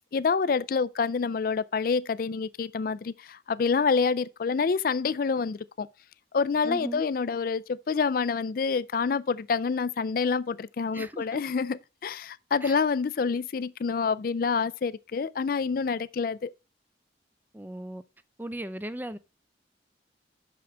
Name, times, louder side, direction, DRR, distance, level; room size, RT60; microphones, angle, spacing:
voice 1, 0.1-5.9 6.3-16.5, left 5 dB, 50° left, 0.4 m, -27 dB
voice 2, 6.6-7.0 10.9-11.4 12.6-12.8 17.5-18.0 18.4-19.2, right 1 dB, 10° right, 0.4 m, -37 dB
6.2 x 6.0 x 4.4 m
head